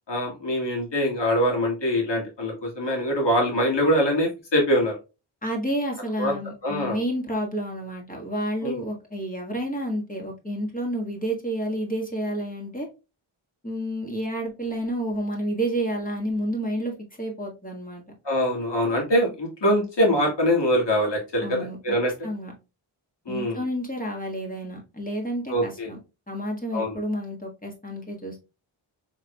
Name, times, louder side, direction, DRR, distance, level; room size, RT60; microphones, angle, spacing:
voice 1, 0.1-4.9 6.2-6.3 6.6-7.0 8.6-8.8 18.3-22.1 23.3-23.6 25.5-25.9 26.7-26.9, equal, 55° left, -1 dB, 2.0 m, -23 dB
voice 2, 5.4-12.9 13.6-16.9 17.2-18.0 21.4-22.0 22.2-22.5 23.3-26.0 26.3-28.4, right 1 dB, 15° left, 0 dB, 1.5 m, -30 dB
4.9 x 3.5 x 2.2 m, 0.29 s
wide cardioid pair, 95°, 50 cm